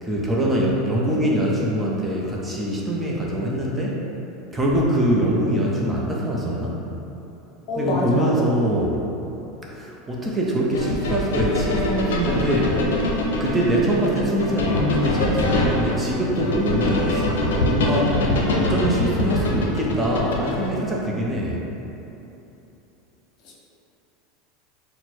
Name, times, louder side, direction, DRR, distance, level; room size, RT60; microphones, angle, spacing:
voice 1, 0.0-4.0 4.5-6.8 7.8-9.0 9.7-12.8 13.4-17.3 17.5-18.2 18.5-21.6, right 1 dB, 15° right, -4 dB, 0.7 m, -23 dB
voice 2, 7.7-8.4 23.4-23.5, left 1 dB, 55° left, -4 dB, 0.8 m, -26 dB
sound 1, 10.7-20.7, left 1 dB, 85° left, 0.5 m, -23 dB
4.3 x 2.1 x 4.3 m, 3.0 s
hypercardioid pair, 100°, 0 cm